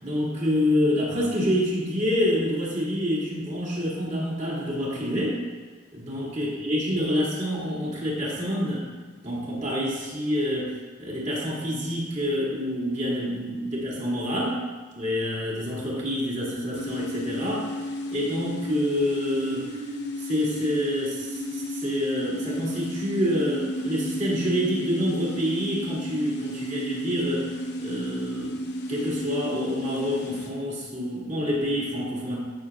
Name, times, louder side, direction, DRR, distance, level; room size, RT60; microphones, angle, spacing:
voice 1, 0.0-5.4 5.9-8.9 9.2-14.6 15.0-17.7 18.1-19.9 20.3-27.5 27.8-28.6 28.9-32.5, equal, 35° right, -6 dB, 2.3 m, -27 dB
sound 1, 16.7-30.5, equal, 50° left, 0.8 m, -33 dB
13.5 x 6.5 x 2.5 m, 1.4 s
head